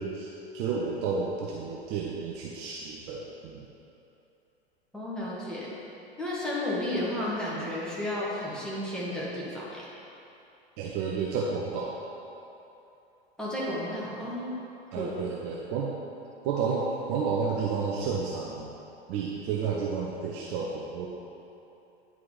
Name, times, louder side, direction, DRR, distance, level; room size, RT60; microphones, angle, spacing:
voice 1, 0.0-3.6 10.8-12.0 14.9-15.9 16.4-18.7 19.1-21.1, right 5 dB, 35° right, -3 dB, 0.7 m, -31 dB
voice 2, 4.9-5.7 6.2-9.9 13.4-14.5 14.9-15.1, left 1 dB, ahead, -8 dB, 1.8 m, -32 dB
9.4 x 4.8 x 4.1 m, 2.9 s
figure-of-eight pair, 95°, 31 cm